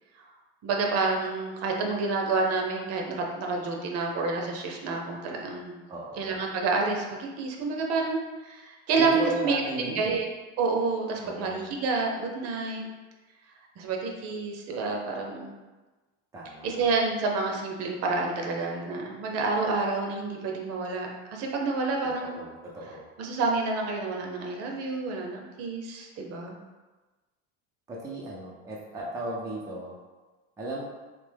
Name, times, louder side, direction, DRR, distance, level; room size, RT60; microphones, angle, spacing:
voice 1, 0.6-5.8 6.2-9.6 9.9-10.3 10.6-12.9 13.8-15.5 16.6-22.4 23.2-26.5, right 3 dB, 50° right, 1 dB, 0.7 m, -29 dB
voice 2, 5.9-6.4 9.0-10.2 11.2-11.7 16.3-16.9 22.0-23.1 27.9-30.0 30.6-30.8, right 2 dB, 10° right, -4 dB, 0.5 m, -35 dB
3.5 x 3.4 x 3.4 m, 1.2 s
cardioid pair, 155°, 33 cm